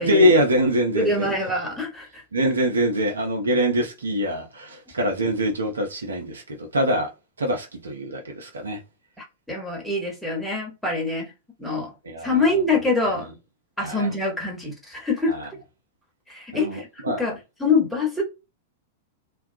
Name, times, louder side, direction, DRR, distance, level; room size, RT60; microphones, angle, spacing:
voice 1, 0.0-1.4 2.3-7.1 7.4-8.8 12.0-12.4 13.1-13.3 13.8-14.1 15.3-15.4 16.5-17.2, equal, 75° right, 0.7 m, -24 dB
voice 2, 0.9-2.2 9.2-11.3 11.6-11.9 12.2-13.3 13.8-15.3 16.3-16.9 17.2-18.2, left 3 dB, ahead, 1.1 m, -25 dB
2.3 x 2.3 x 2.5 m
figure-of-eight pair, 95°, 0 cm